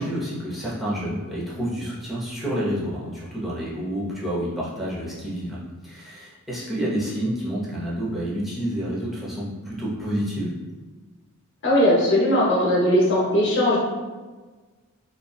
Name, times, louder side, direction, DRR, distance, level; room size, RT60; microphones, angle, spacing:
voice 1, 0.0-5.6 5.8-10.5, equal, ahead, -8 dB, 0.6 m, -29 dB
voice 2, 11.6-13.8, left 1 dB, 55° left, -5 dB, 0.7 m, -19 dB
2.6 x 2.2 x 2.2 m, 1.3 s
head